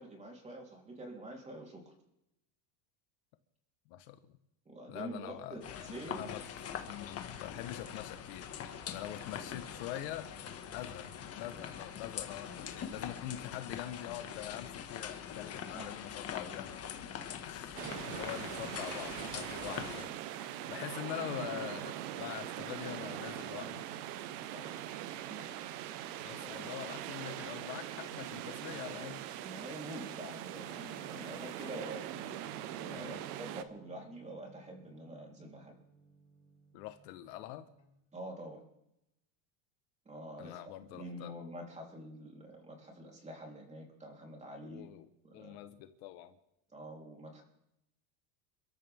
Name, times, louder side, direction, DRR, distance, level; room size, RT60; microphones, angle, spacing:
voice 1, 0.0-1.9 4.7-6.3 15.7-16.0 24.5-24.8 25.3-25.6 26.0-26.9 29.4-32.3 32.8-35.7 38.1-38.6 40.1-40.6 40.9-45.0 45.2-45.6 46.7-47.4, right 1 dB, 15° right, 0 dB, 3.7 m, -47 dB
voice 2, 3.9-4.4 4.9-8.5 8.9-10.3 10.7-11.1 11.3-23.8 26.2-29.2 32.9-33.2 36.7-37.7 40.4-41.3 44.6-45.1 45.3-46.4, left 13 dB, 60° left, 9 dB, 1.4 m, -44 dB
sound 1, 5.6-20.0, left 8 dB, 30° left, 1.7 m, -43 dB
sound 2, 17.8-33.6, right 12 dB, 70° right, 1.3 m, -42 dB
Guitar, 30.7-38.4, equal, 15° left, 2.8 m, -61 dB
29.0 x 13.5 x 3.6 m, 0.84 s
supercardioid pair, 150°, 48 cm